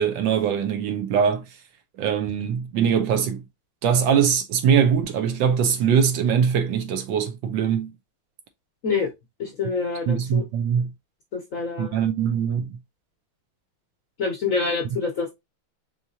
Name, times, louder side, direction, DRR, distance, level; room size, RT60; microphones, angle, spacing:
voice 1, 0.0-1.4 2.0-3.4 3.8-7.9 10.1-10.9 11.8-12.8, right 7 dB, 75° right, 1.2 m, -22 dB
voice 2, 9.4-10.4 11.3-12.0 14.2-15.3, left 4 dB, 60° left, 0.8 m, -26 dB
4.6 x 3.5 x 2.7 m
omnidirectional pair, 2.3 m